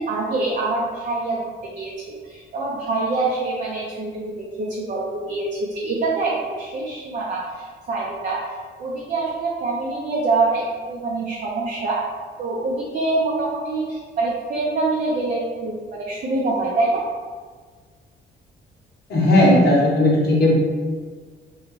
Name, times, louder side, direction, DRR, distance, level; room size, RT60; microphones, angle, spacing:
voice 1, 0.0-12.0 12.4-17.1, right 3 dB, 40° right, -4 dB, 0.6 m, -25 dB
voice 2, 19.1-20.5, left 1 dB, 55° left, -3 dB, 0.9 m, -16 dB
2.9 x 2.3 x 3.0 m, 1.5 s
cardioid pair, 90°, 20 cm